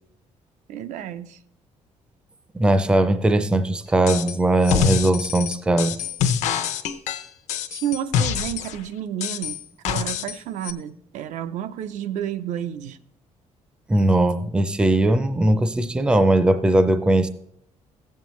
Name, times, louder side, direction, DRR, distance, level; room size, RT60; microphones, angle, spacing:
voice 1, 0.7-1.4 7.7-9.6 9.9-13.0, right 10 dB, 85° right, 0.5 m, -30 dB
voice 2, 2.5-6.0 13.9-17.3, right 1 dB, 10° right, 0.4 m, -19 dB
sound 1, 4.1-4.4 4.6-8.8 9.2-10.4 10.6-10.7, left 8 dB, 75° left, 0.7 m, -25 dB
15.5 x 7.3 x 3.1 m
cardioid pair, 175°, 12 cm